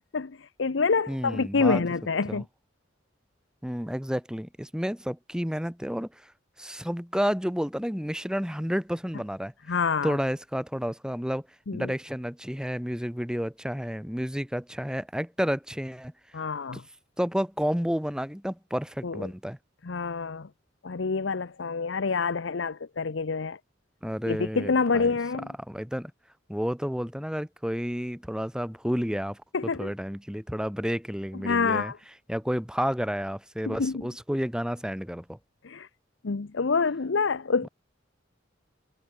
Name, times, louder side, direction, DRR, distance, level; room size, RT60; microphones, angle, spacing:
voice 1, 0.1-2.4 9.7-10.2 11.7-11.9 16.3-16.8 19.0-19.3 19.8-20.5 20.8-23.6 24.3-25.5 29.5-29.9 31.4-32.0 33.7-34.0 35.6-35.9 36.2-37.7, left 4 dB, 75° left, 0.7 m, -27 dB
voice 2, 1.1-1.8 2.3-2.4 3.6-6.3 6.6-9.5 10.0-11.5 11.7-16.1 16.7-16.8 17.2-19.6 24.0-25.1 25.7-26.1 26.5-29.4 29.8-31.9 32.3-35.4, equal, 5° right, 3.5 m, -30 dB
head